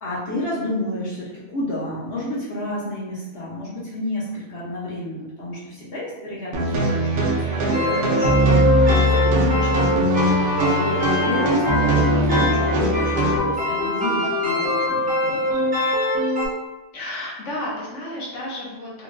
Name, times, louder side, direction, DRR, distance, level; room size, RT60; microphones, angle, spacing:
voice 1, 0.0-15.7, left 1 dB, 60° left, -7 dB, 0.9 m, -31 dB
sound 1, 6.5-13.4, right 1 dB, 55° right, 0.7 m, -21 dB
sound 2, 7.7-16.5, left 1 dB, 10° right, 0.6 m, -23 dB
voice 2, 16.9-19.0, left 1 dB, 80° left, -5 dB, 1.1 m, -32 dB
3.7 x 2.1 x 2.4 m, 1.1 s
omnidirectional pair, 1.2 m